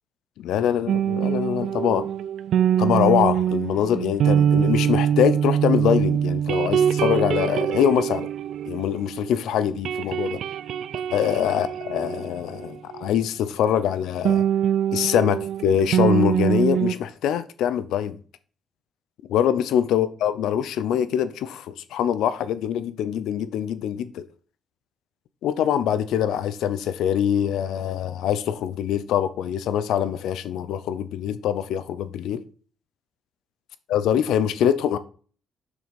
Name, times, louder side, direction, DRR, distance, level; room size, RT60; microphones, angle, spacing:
voice 1, 0.4-2.0 2.8-8.3 8.7-10.4 11.1-14.4 14.9-18.2 19.3-24.2 25.4-32.4 33.9-35.0, left 9 dB, 85° left, 0.7 m, -24 dB
sound 1, 0.9-9.3 9.6-13.1 14.2-16.9, right 9 dB, 70° right, 0.4 m, -23 dB
7.5 x 6.2 x 5.3 m
cardioid pair, 90°, 0 cm